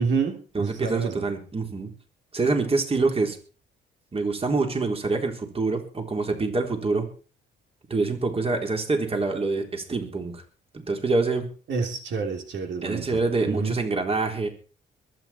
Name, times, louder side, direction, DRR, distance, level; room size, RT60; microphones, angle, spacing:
voice 1, 0.0-1.3 11.7-13.2 13.5-13.8, right 5 dB, 65° right, 3 dB, 3.3 m, -28 dB
voice 2, 0.5-1.9 2.3-3.4 4.1-7.1 7.9-10.4 10.7-11.5 12.8-14.5, right 3 dB, 30° right, 3 dB, 4.0 m, -26 dB
22.5 x 9.4 x 4.5 m, 0.38 s
cardioid pair, 90°, 20 cm